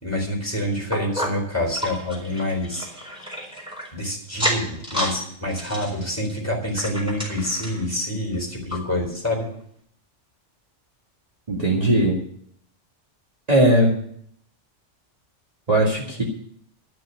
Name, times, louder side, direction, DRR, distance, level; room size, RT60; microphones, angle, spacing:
voice 1, 0.0-2.9 3.9-9.5, left 1 dB, 10° left, -1 dB, 4.0 m, -27 dB
sound 1, 0.9-3.9 4.3-5.2 5.5-7.9 8.3-8.4 8.7-8.8 9.4-9.5, equal, 5° right, 4.3 m, -30 dB
voice 2, 11.5-12.2 13.5-14.0 15.7-16.2, right 1 dB, 30° right, -4 dB, 2.3 m, -18 dB
13.0 x 6.2 x 9.5 m, 0.65 s
omnidirectional pair, 1.3 m